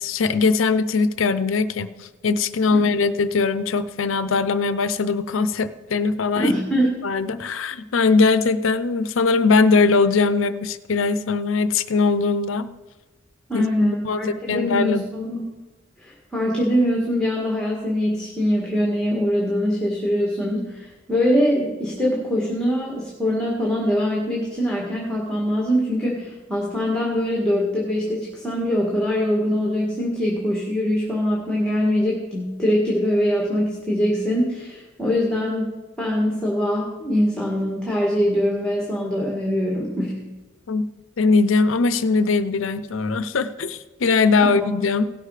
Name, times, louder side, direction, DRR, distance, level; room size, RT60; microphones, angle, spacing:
voice 1, 0.0-6.5 7.0-12.7 13.5-15.0 40.7-40.8 41.2-45.1, left 4 dB, 85° left, 13 dB, 0.6 m, -21 dB
voice 2, 6.3-6.9 13.5-15.4 16.0-40.3 44.4-44.7, equal, 5° left, -3 dB, 1.8 m, -23 dB
17.0 x 6.6 x 4.9 m, 1.2 s
head